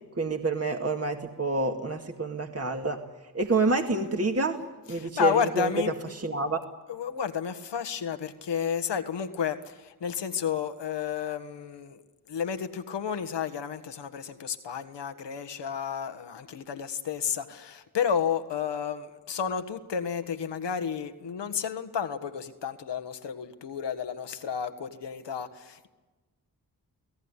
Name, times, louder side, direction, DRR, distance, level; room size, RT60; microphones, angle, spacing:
voice 1, 0.2-3.0 3.3-5.7 6.2-6.6, right 3 dB, 35° right, 4 dB, 2.2 m, -28 dB
voice 2, 4.9-6.0 6.9-12.0 12.3-25.9, left 7 dB, 90° left, 9 dB, 1.6 m, -31 dB
29.5 x 17.5 x 9.9 m, 1.2 s
cardioid pair, 45°, 41 cm